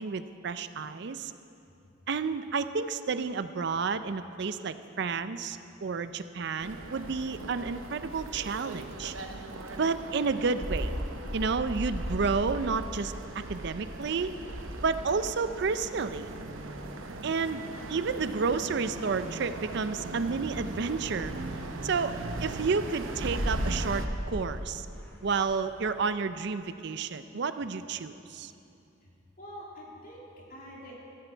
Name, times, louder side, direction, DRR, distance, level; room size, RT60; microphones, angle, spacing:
voice 1, 0.0-1.3 2.1-9.1 9.8-10.9 11.3-14.3 14.8-16.3 17.2-17.6 17.9-21.3 21.8-22.2 22.4-24.9 25.2-28.5, right 5 dB, 60° right, 12 dB, 0.5 m, -31 dB
sound 1, 6.6-24.1, right 2 dB, 85° right, 1.0 m, -40 dB
sound 2, 10.6-26.1, equal, 10° left, 3.4 m, -39 dB
voice 2, 29.4-31.1, equal, 45° left, -4 dB, 3.0 m, -46 dB
15.0 x 14.5 x 4.5 m, 2.7 s
head